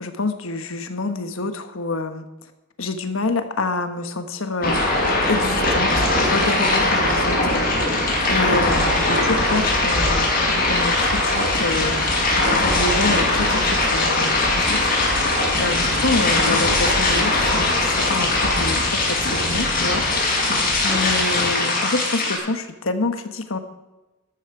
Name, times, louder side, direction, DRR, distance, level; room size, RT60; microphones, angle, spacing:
voice 1, 0.0-2.2 2.8-4.8 5.3-7.6 8.3-12.0 12.6-15.3 15.6-20.0 20.8-23.6, left 3 dB, 80° left, 8 dB, 1.3 m, -27 dB
sound 1, 4.6-22.4, left 2 dB, 45° left, 5.5 m, -20 dB
13.0 x 13.0 x 4.8 m, 1.1 s
head